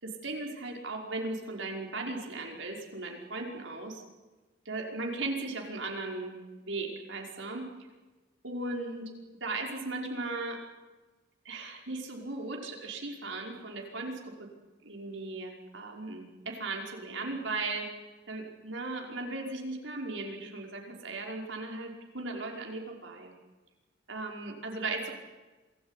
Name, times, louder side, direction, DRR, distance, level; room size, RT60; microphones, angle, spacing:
voice 1, 0.0-4.0 4.7-7.7 8.4-9.1 9.4-10.6 11.5-14.5 14.8-17.9 18.3-23.3 24.1-25.1, right 2 dB, 85° right, 1 dB, 5.4 m, -37 dB
27.0 x 19.0 x 10.0 m, 1.2 s
head